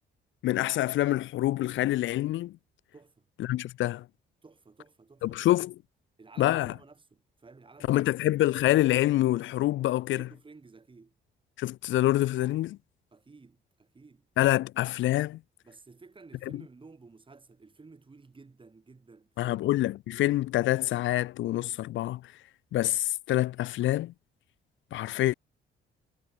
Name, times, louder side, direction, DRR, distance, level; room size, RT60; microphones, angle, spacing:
voice 1, 0.4-2.6 3.4-4.0 5.2-5.7 6.4-6.7 7.9-10.2 11.6-12.8 14.4-15.4 19.4-22.3 22.7-24.1 24.9-25.3, left 15 dB, 75° left, 0.5 m, -26 dB
voice 2, 2.9-3.2 4.4-5.7 6.2-8.1 10.2-11.1 13.1-14.3 15.6-19.6, right 4 dB, 25° right, 3.1 m, -53 dB
cardioid pair, 90°, 20 cm